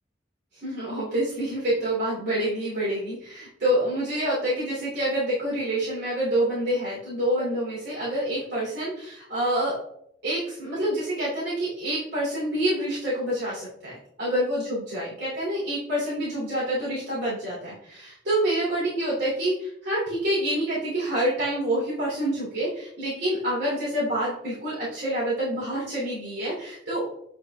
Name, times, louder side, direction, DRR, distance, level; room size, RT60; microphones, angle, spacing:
voice 1, 0.6-9.7 10.2-27.0, right 1 dB, 65° right, -9 dB, 3.0 m, -27 dB
8.1 x 4.9 x 3.5 m, 0.73 s
head